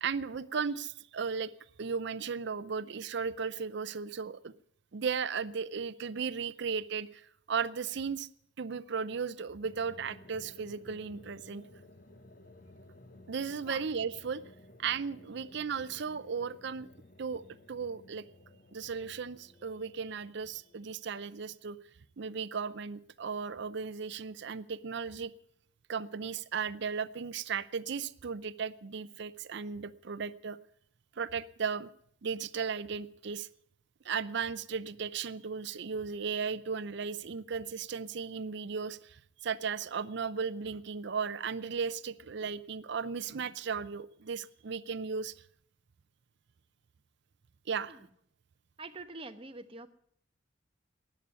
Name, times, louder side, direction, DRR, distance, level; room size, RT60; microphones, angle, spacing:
voice 1, 0.0-1.5 1.8-4.5 4.9-8.3 8.6-11.6 13.3-14.4 14.8-16.9 17.2-17.4 17.7-18.2 18.7-21.8 22.2-25.3 25.9-30.6 31.2-31.9 32.2-33.5 34.0-45.3 47.7-48.0, right 6 dB, 55° right, 15 dB, 0.5 m, -36 dB
sound 1, 9.6-21.7, left 1 dB, 45° left, 0.9 m, -56 dB
voice 2, 48.8-49.9, right 3 dB, 25° right, 7 dB, 1.1 m, -45 dB
14.0 x 9.5 x 9.7 m, 0.68 s
head